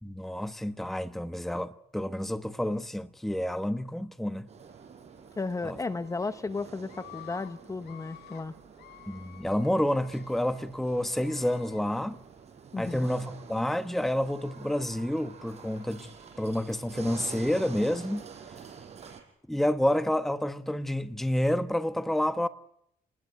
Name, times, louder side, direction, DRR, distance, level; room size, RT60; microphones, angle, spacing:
voice 1, 0.0-4.5 5.6-5.8 9.1-12.2 12.8-16.1 16.4-18.3 19.5-22.5, left 1 dB, ahead, 1.1 m, -29 dB
sound 1, 4.5-19.2, right 6 dB, 40° right, 5.7 m, -48 dB
voice 2, 5.4-8.5 12.7-13.1, left 3 dB, 20° left, 1.2 m, -34 dB
Screaming, 5.7-6.3 6.8-7.5 7.8-8.4 8.8-10.6 11.1-11.8, left 13 dB, 85° left, 6.2 m, -51 dB
29.5 x 20.0 x 9.6 m
cardioid pair, 110°, 17 cm